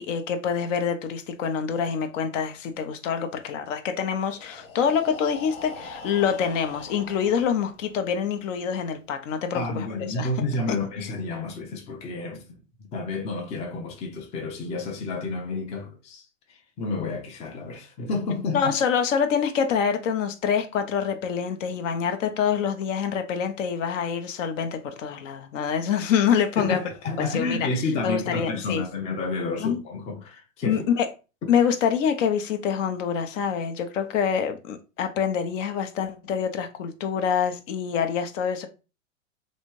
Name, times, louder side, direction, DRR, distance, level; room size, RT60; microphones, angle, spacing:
voice 1, 0.0-10.3 10.7-10.8 18.5-26.8 27.2-27.7 28.0-28.8 29.6-29.8 30.6-31.1 31.5-38.7, left 7 dB, 65° left, 0.8 m, -26 dB
Breathing, 4.2-8.1, left 3 dB, 90° left, 1.1 m, -42 dB
voice 2, 9.5-12.6 12.9-18.6 26.6-30.8, left 3 dB, 20° left, 0.4 m, -30 dB
3.2 x 2.7 x 3.0 m
hypercardioid pair, 120°, 40 cm